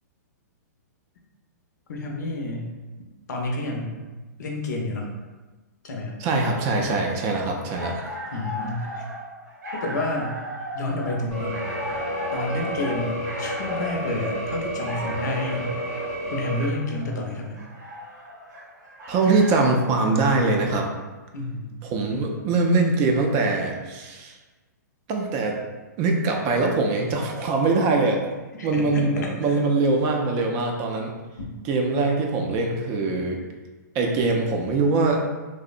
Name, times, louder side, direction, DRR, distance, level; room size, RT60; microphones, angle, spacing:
voice 1, 1.9-2.7 3.3-4.1 4.4-5.1 5.8-6.2 8.3-9.0 9.7-10.4 10.7-11.5 12.3-15.7 16.3-17.6 21.3-21.7 28.6-29.6 34.1-34.2, left 2 dB, 70° left, 1 dB, 0.6 m, -29 dB
voice 2, 6.2-8.0 19.1-20.9 21.8-24.3 25.1-25.6 26.0-28.3 28.6-31.1 31.7-33.4 33.9-35.2, right 3 dB, 30° right, 1 dB, 0.3 m, -22 dB
sound 1, 7.5-20.0, equal, 85° right, 0.8 m, -37 dB
sound 2, 11.3-16.7, equal, ahead, 0.8 m, -30 dB
2.7 x 2.0 x 2.4 m, 1.2 s
hypercardioid pair, 135°, 10 cm